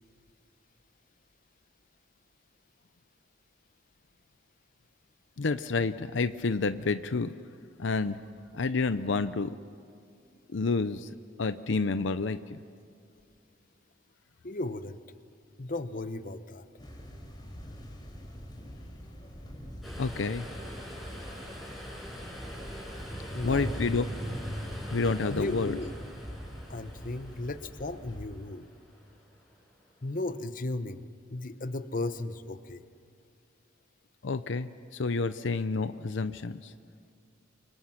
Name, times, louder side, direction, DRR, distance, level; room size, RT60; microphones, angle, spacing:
voice 1, 5.4-7.3 7.8-8.2 8.5-9.5 10.5-12.6 20.0-20.5 23.4-24.1 24.9-25.7 34.2-36.7, left 4 dB, 75° left, 12 dB, 0.6 m, -29 dB
voice 2, 14.4-15.0 15.6-16.7 23.3-23.7 25.3-25.9 26.7-28.7 30.0-31.0 31.3-32.9, left 2 dB, 45° left, 11 dB, 0.9 m, -35 dB
sound 1, 16.8-28.3, equal, 25° left, 3.6 m, -41 dB
sound 2, 19.8-30.1 30.4-30.5, equal, ahead, 6.1 m, -46 dB
29.0 x 24.5 x 5.9 m, 2.4 s
head